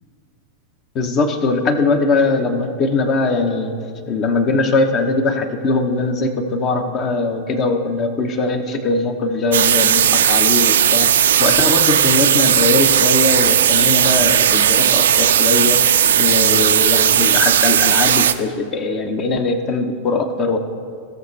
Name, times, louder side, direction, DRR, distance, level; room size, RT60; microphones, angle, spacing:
voice 1, 0.9-3.8 4.1-11.1 11.4-20.6, left 3 dB, 35° left, 7 dB, 0.9 m, -20 dB
sound 1, 9.5-18.3, right 9 dB, 60° right, 0.4 m, -15 dB
16.5 x 6.5 x 3.2 m, 2.2 s
figure-of-eight pair, 90°, 0 cm